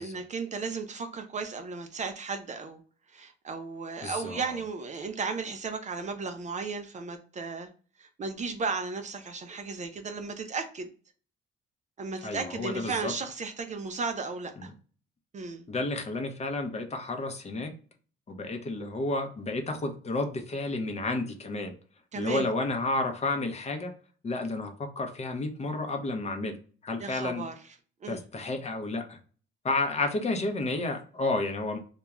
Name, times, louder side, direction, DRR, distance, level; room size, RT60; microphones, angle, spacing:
voice 1, 0.0-2.8 3.1-7.7 8.0-10.9 12.0-14.7 15.3-15.6 22.1-22.5 27.0-27.5 28.0-28.2, right 4 dB, 35° right, 7 dB, 0.5 m, -35 dB
voice 2, 4.0-4.6 12.2-13.1 14.6-14.7 15.7-17.7 18.3-21.7 22.1-23.9 24.2-26.6 26.8-27.4 28.1-29.2 29.6-31.8, left 2 dB, 35° left, 4 dB, 0.6 m, -31 dB
2.4 x 2.2 x 2.9 m, 0.40 s
cardioid pair, 90°, 20 cm